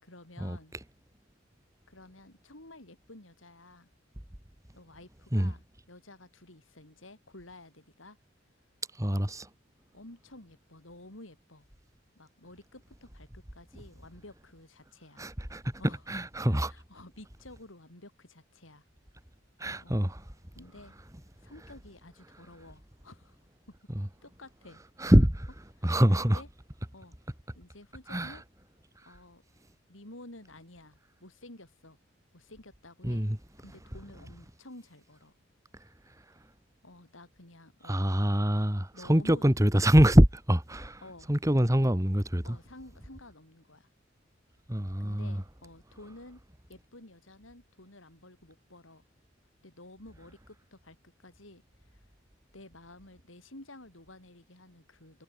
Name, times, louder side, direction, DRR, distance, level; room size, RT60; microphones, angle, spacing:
voice 1, 0.0-0.7 1.9-3.9 4.7-8.2 9.0-9.2 9.9-11.7 12.2-15.2 15.8-16.0 16.5-18.8 19.8-20.1 20.5-21.0 21.4-23.4 24.2-24.8 25.8-26.5 26.9-27.2 27.5-28.4 29.0-29.4 29.9-32.0 32.3-33.3 33.6-35.3 36.8-38.1 38.9-39.5 41.0-41.3 42.4-43.9 45.0-46.4 46.7-49.0 49.6-52.1 52.5-55.2, left 2 dB, 85° left, 5.5 m, -51 dB
voice 2, 9.0-9.5 15.2-15.8 16.1-16.7 19.6-20.2 24.0-24.1 25.0-25.5 25.8-26.4 28.1-28.4 33.0-33.4 37.9-41.0 41.3-42.6 44.7-45.4, equal, 15° right, 2.2 m, -24 dB
head